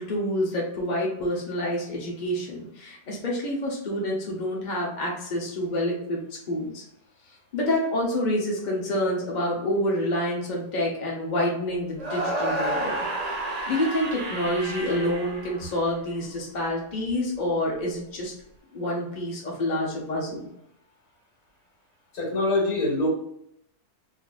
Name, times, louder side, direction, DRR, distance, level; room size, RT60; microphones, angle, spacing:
voice 1, 0.0-6.2 6.5-6.8 7.5-12.9 13.2-13.4 13.7-18.3 18.7-20.5, left 1 dB, 35° left, -2 dB, 1.0 m, -28 dB
sound 1, 12.0-16.2, right 1 dB, 55° right, 0.4 m, -30 dB
voice 2, 22.1-23.1, left 2 dB, 70° left, -3 dB, 2.0 m, -24 dB
4.0 x 2.9 x 2.5 m, 0.75 s
omnidirectional pair, 1.7 m